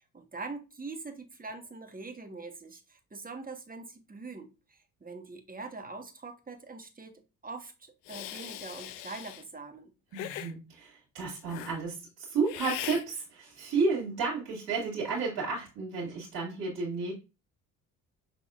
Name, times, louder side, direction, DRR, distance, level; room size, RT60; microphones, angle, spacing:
voice 1, 0.1-9.9, right 3 dB, 20° right, 1.3 m, -43 dB
Hiss, 8.1-9.4 10.1-10.5 11.5-11.8 12.5-13.0, left 13 dB, 75° left, 0.5 m, -39 dB
voice 2, 10.1-17.1, right 4 dB, 60° right, 2.3 m, -32 dB
6.0 x 3.4 x 2.4 m
hypercardioid pair, 50°, 43 cm